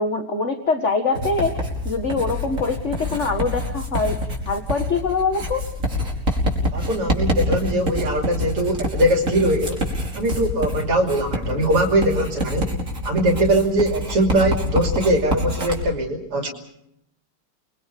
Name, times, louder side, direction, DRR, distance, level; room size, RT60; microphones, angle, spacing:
voice 1, 0.0-4.2 4.5-5.6, left 4 dB, 35° left, 6 dB, 1.9 m, -24 dB
Writing, 1.2-15.8, left 1 dB, 35° right, 5.8 m, -26 dB
voice 2, 6.7-9.9 10.1-12.8 13.0-16.5, right 1 dB, 85° right, 3 dB, 3.9 m, -21 dB
29.5 x 22.5 x 5.3 m, 0.78 s
omnidirectional pair, 2.4 m